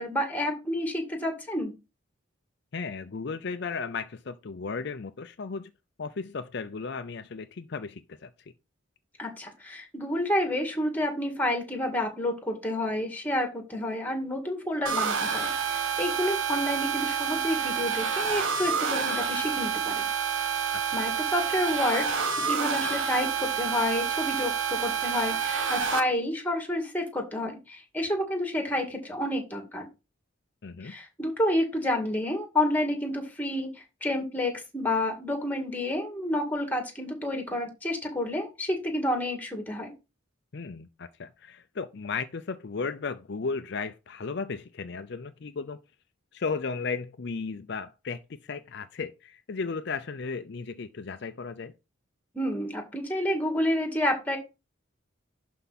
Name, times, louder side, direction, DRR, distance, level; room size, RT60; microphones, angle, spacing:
voice 1, 0.0-1.7 9.2-20.1 20.9-22.1 22.5-29.9 30.8-39.9 52.3-54.4, left 1 dB, 10° left, 2.1 m, -29 dB
voice 2, 2.7-5.7 6.0-8.3 20.7-20.8 30.6-31.0 40.5-45.8 46.3-51.7, left 4 dB, 55° left, 0.5 m, -35 dB
sound 1, 14.9-26.0, right 6 dB, 70° right, 1.4 m, -28 dB
11.5 x 4.7 x 4.1 m
head